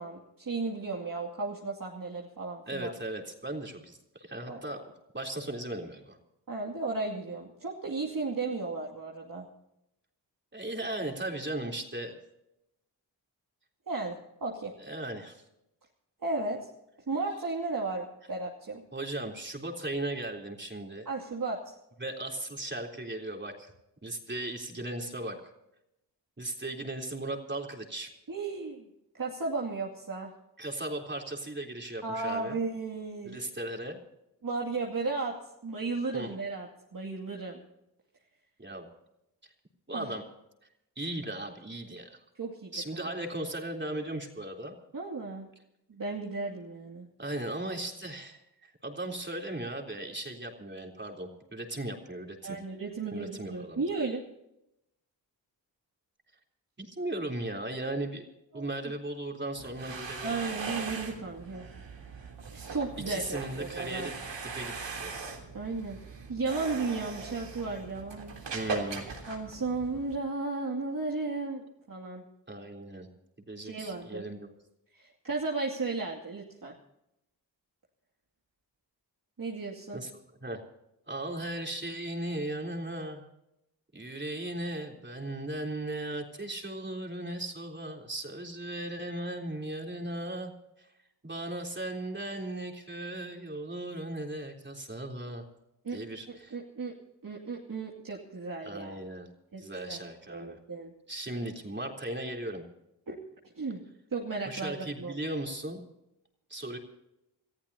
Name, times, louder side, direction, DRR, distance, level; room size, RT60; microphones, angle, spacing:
voice 1, 0.0-2.9 4.5-4.6 6.5-9.5 13.9-14.7 16.2-16.7 17.1-18.8 21.1-21.7 28.3-28.9 29.1-30.3 32.0-33.4 34.4-35.4 35.6-37.6 39.9-40.1 42.4-43.1 44.9-45.5 45.9-47.1 52.4-54.2 58.5-58.9 60.2-61.6 62.5-64.1 65.5-66.0 66.3-68.4 69.3-72.2 73.6-74.3 74.9-76.7 79.4-80.0 95.8-96.0 96.3-96.9 97.2-99.0 99.5-100.9 103.1-103.2 103.4-103.8 104.1-105.2, right 3 dB, 50° right, -3 dB, 2.5 m, -35 dB
voice 2, 2.7-4.8 5.1-6.2 10.5-12.2 14.8-15.4 18.9-21.1 22.0-23.7 24.0-25.4 26.4-28.1 30.6-32.6 33.2-34.0 36.1-36.3 38.6-38.9 39.9-40.2 41.0-42.2 42.7-44.8 47.2-52.6 53.1-53.8 56.8-58.3 58.5-60.3 63.1-64.1 64.4-64.7 65.0-65.2 68.5-69.1 72.5-73.1 73.5-74.5 79.9-80.1 80.4-80.6 81.1-83.2 83.9-90.5 90.8-90.9 91.2-95.4 95.9-96.6 98.6-99.3 99.6-100.6 101.1-102.6 104.5-105.8 106.5-106.8, right 1 dB, 25° right, 2 dB, 3.6 m, -37 dB
sound 1, 59.5-70.2, right 4 dB, 80° right, 3.5 m, -40 dB
28.0 x 14.5 x 2.8 m, 0.84 s
cardioid pair, 65°, 43 cm